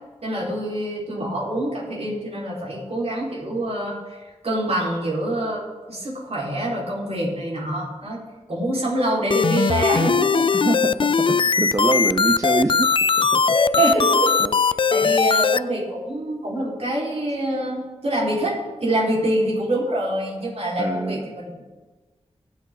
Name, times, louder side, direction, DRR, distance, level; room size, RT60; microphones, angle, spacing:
voice 1, 0.2-4.2 4.4-8.2 8.5-10.5 13.5-14.4 14.9-21.6, right 1 dB, 60° right, -5 dB, 4.9 m, -25 dB
sound 1, 9.3-15.6, left 5 dB, 45° left, 0.4 m, -19 dB
voice 2, 10.5-13.4 14.4-14.5 15.0-15.1 20.8-21.3, right 2 dB, 25° right, 5 dB, 0.7 m, -25 dB
21.5 x 7.5 x 4.0 m, 1.3 s
wide cardioid pair, 65°, 12 cm